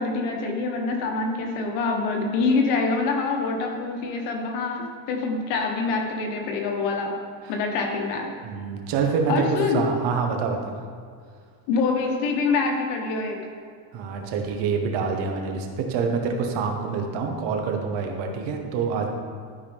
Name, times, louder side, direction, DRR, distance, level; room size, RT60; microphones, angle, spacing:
voice 1, 0.0-7.2 7.5-8.3 9.3-9.9 11.7-13.5, left 4 dB, 85° left, 2 dB, 1.4 m, -25 dB
voice 2, 8.4-9.5 9.7-10.8 13.9-19.1, right 5 dB, 70° right, 3 dB, 1.4 m, -26 dB
12.5 x 5.0 x 3.5 m, 2.1 s
cardioid pair, 110°, 44 cm